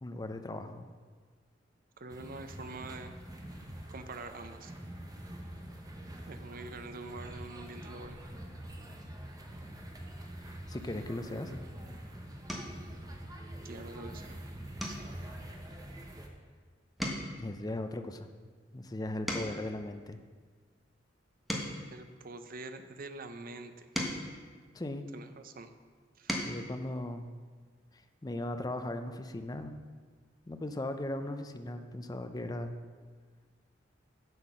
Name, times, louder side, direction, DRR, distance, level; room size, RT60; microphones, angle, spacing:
voice 1, 0.0-0.9 10.7-11.6 17.4-18.3 18.7-20.2 24.7-25.1 26.3-27.3 28.2-29.8 30.5-32.8, left 1 dB, 20° left, 7 dB, 0.6 m, -38 dB
voice 2, 2.0-3.1 3.9-4.7 6.3-8.2 13.6-14.4 14.9-15.1 21.9-23.9 25.1-25.7 26.2-26.4, right 3 dB, 50° right, 9 dB, 0.6 m, -45 dB
sound 1, 2.1-16.3, right 1 dB, 20° right, 1.0 m, -45 dB
sound 2, 12.4-12.9 13.4-13.7 14.0-14.2 14.7-16.6 16.9-19.8 20.4-22.9 23.5-25.4 25.9-26.6 28.0-28.1 28.4-28.6, equal, ahead, 1.2 m, -40 dB
7.8 x 7.4 x 6.1 m, 1.6 s
head